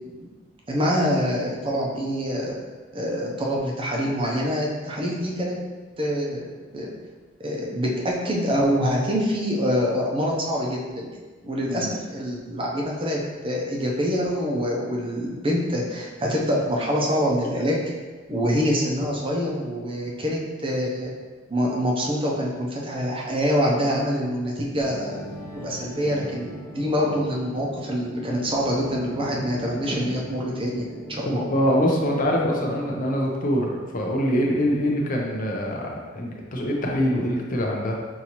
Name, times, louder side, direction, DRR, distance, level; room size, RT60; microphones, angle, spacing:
voice 1, 0.7-2.5 2.9-5.6 6.0-6.9 7.4-11.1 11.4-17.8 18.3-21.1 21.5-25.2 25.6-30.8 31.1-31.4, equal, 30° right, -2 dB, 0.7 m, -25 dB
sound 1, 24.8-32.4, equal, 75° right, 1.2 m, -39 dB
voice 2, 31.3-38.0, equal, 45° left, 0 dB, 0.6 m, -24 dB
5.6 x 2.6 x 3.0 m, 1.3 s
head